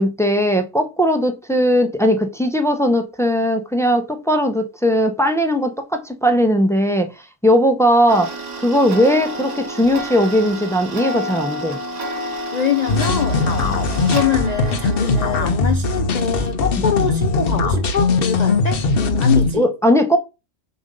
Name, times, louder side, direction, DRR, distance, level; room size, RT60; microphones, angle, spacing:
voice 1, 0.0-7.1 7.4-11.8 19.5-20.2, equal, 5° left, 0.4 m, -18 dB
Tick-tock, 8.1-15.3, equal, 65° right, 1.5 m, -30 dB
voice 2, 12.5-18.8 19.2-19.7, left 7 dB, 85° left, 0.3 m, -23 dB
sound 1, 12.9-19.5, left 3 dB, 50° left, 0.9 m, -20 dB
6.9 x 2.7 x 5.2 m
omnidirectional pair, 1.4 m